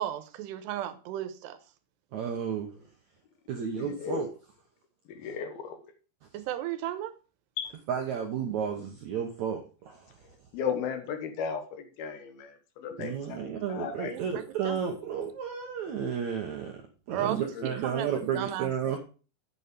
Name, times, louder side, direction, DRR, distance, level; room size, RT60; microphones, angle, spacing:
voice 1, 0.0-1.6 6.3-7.1 14.1-14.8 17.1-17.4 17.6-19.0, right 11 dB, 90° right, 3.0 m, -35 dB
voice 2, 2.1-2.7 3.5-4.3 7.9-10.1 13.0-16.8 17.1-19.0, right 7 dB, 75° right, 1.7 m, -32 dB
voice 3, 3.8-4.3 5.1-5.9 7.6-7.7 10.5-13.4 13.7-14.1 17.5-17.7, left 7 dB, 70° left, 2.8 m, -35 dB
8.2 x 7.0 x 5.1 m
omnidirectional pair, 4.8 m